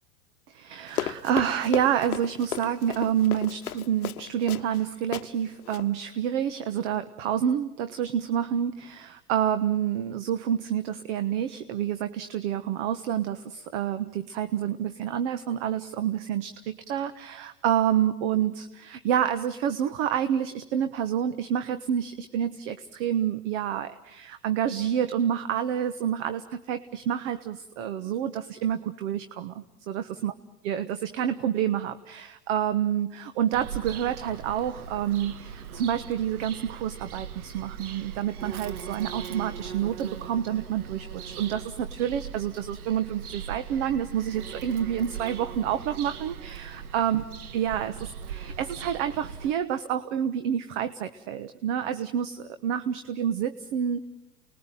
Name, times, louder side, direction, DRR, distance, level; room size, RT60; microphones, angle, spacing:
voice 1, 0.5-30.3 30.6-47.2 47.5-54.1, right 9 dB, 50° right, 11 dB, 1.3 m, -28 dB
Run, 0.9-4.8 5.1-5.3 5.6-5.9, left 11 dB, 70° left, 0.9 m, -34 dB
Bird vocalization bird call bird song, 33.5-49.5, right 7 dB, 70° right, 1.5 m, -40 dB
29.5 x 20.5 x 9.1 m, 0.98 s
hypercardioid pair, 95°, 46 cm